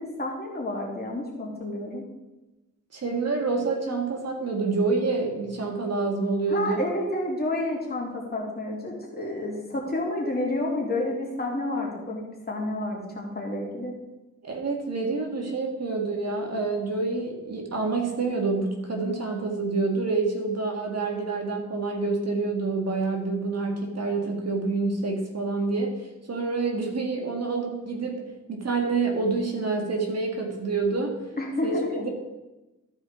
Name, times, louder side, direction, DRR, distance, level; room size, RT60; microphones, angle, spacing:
voice 1, 0.0-2.0 6.5-14.0 31.4-32.1, left 1 dB, 30° left, -2 dB, 2.9 m, -30 dB
voice 2, 2.9-6.9 14.4-28.2 28.5-31.2 31.6-32.1, right 3 dB, 55° right, 2 dB, 1.9 m, -27 dB
14.0 x 4.8 x 5.0 m, 1.0 s
cardioid pair, 85°, 31 cm